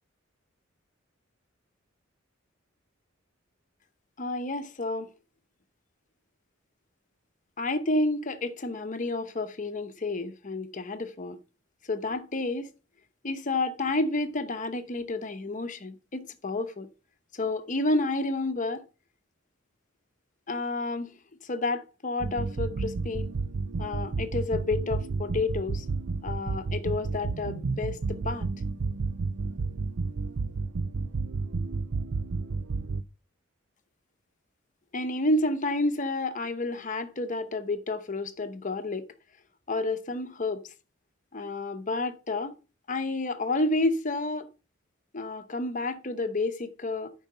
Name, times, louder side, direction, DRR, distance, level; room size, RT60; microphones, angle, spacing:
voice 1, 4.2-5.1 7.6-11.4 11.9-12.7 13.2-16.9 17.3-18.8 20.5-23.3 23.8-25.9 26.2-28.5 34.9-39.1 39.7-40.6 41.3-42.5 42.9-44.5 45.1-47.1, left 2 dB, 40° left, 0.9 m, -30 dB
sound 1, 22.2-33.0, right 4 dB, 65° right, 0.5 m, -31 dB
8.9 x 5.7 x 5.5 m
head